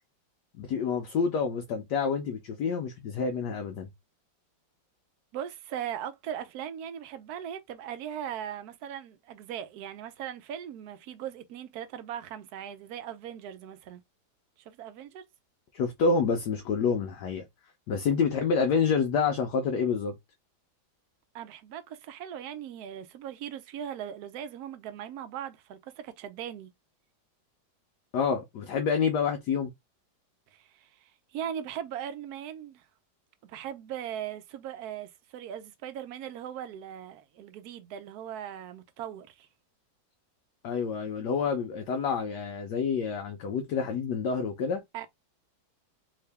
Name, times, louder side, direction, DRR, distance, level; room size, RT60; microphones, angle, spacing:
voice 1, 0.6-3.9 15.7-17.4 17.9-20.1 28.1-29.7 40.6-44.8, left 5 dB, 70° left, 1.1 m, -28 dB
voice 2, 5.3-14.0 14.7-15.3 21.3-26.7 30.5-32.8 33.4-39.5 44.9-45.1, right 10 dB, 70° right, 1.0 m, -39 dB
3.6 x 2.8 x 3.3 m
omnidirectional pair, 2.0 m